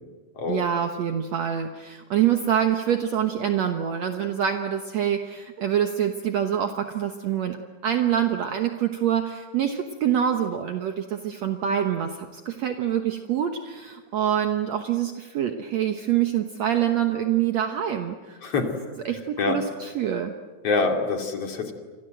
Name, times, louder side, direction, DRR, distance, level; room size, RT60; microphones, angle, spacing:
voice 1, 0.5-7.6 7.8-18.4 19.1-20.3, right 9 dB, 60° right, 5 dB, 2.3 m, -25 dB
voice 2, 18.4-18.8 19.4-19.6 20.6-21.7, left 4 dB, 50° left, 3 dB, 3.7 m, -25 dB
30.0 x 25.0 x 7.8 m, 1.5 s
omnidirectional pair, 3.7 m